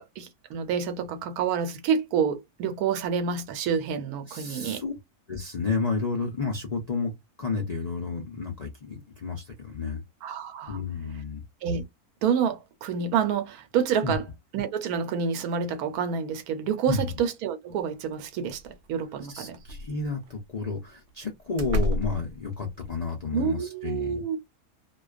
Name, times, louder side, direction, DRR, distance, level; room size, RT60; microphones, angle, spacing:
voice 1, 0.0-4.8 10.2-10.8 11.6-11.9 12.2-14.2 14.5-19.6 23.3-24.4, right 7 dB, 90° right, 1.1 m, -28 dB
voice 2, 4.3-4.9 5.3-7.1 7.4-10.0 10.7-11.4 14.0-14.2 16.9-17.1 19.3-24.4, left 4 dB, 65° left, 0.4 m, -31 dB
sound 1, 18.1-18.2 18.5-18.9 19.5-20.3 21.1-21.2 21.6-23.1, left 1 dB, 65° right, 0.7 m, -31 dB
2.4 x 2.2 x 2.3 m
omnidirectional pair, 1.6 m